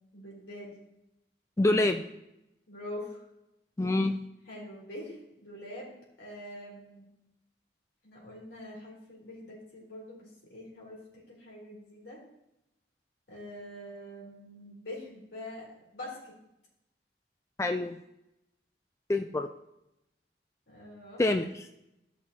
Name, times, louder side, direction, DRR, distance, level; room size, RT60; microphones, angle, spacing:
voice 1, 0.1-0.8 2.7-3.2 4.5-7.0 8.0-11.0 11.3-12.2 13.3-16.4 20.7-21.2, left 1 dB, 80° left, -4 dB, 3.9 m, -44 dB
voice 2, 1.6-2.1 3.8-4.2 17.6-18.0 19.1-19.5 21.2-21.7, left 2 dB, 15° left, 5 dB, 0.3 m, -26 dB
15.0 x 6.1 x 2.9 m, 0.87 s
head